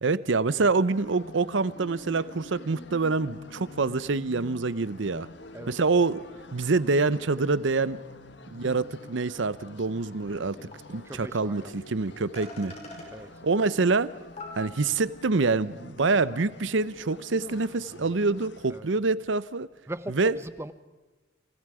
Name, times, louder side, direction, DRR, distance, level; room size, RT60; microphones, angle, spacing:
voice 1, 0.0-5.3 5.7-6.2 6.5-8.0 8.5-10.6 10.9-12.7 13.4-14.1 14.6-19.7 20.2-20.4, right 3 dB, 75° right, 0.7 m, -26 dB
sound 1, 0.9-18.8, left 2 dB, 65° left, 1.4 m, -47 dB
sound 2, 10.3-10.4 10.7-10.8 12.0-12.1 12.4-13.1 14.0-14.1 14.4-15.1, left 2 dB, 35° left, 5.6 m, -42 dB
voice 2, 11.0-11.7 13.1-13.3 18.7-18.9 19.9-20.7, right 1 dB, 15° right, 0.9 m, -39 dB
29.5 x 27.5 x 4.9 m
head